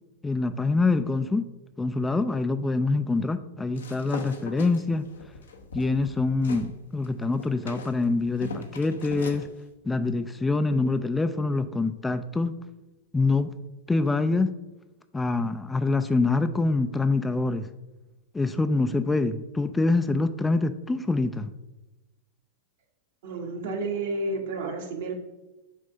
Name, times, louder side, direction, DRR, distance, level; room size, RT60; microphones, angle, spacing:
voice 1, 0.2-1.5 1.8-5.0 5.7-9.5 9.8-12.5 13.1-13.5 13.9-14.5 15.1-17.7 18.3-21.5, left 3 dB, 10° left, 10 dB, 0.3 m, -25 dB
sound 1, 3.7-6.7 7.0-9.5, left 3 dB, 80° left, 0.9 m, -40 dB
voice 2, 23.2-25.1, right 3 dB, 65° right, 2 dB, 1.4 m, -31 dB
7.0 x 2.7 x 5.4 m, 1.0 s
hypercardioid pair, 105°, 0 cm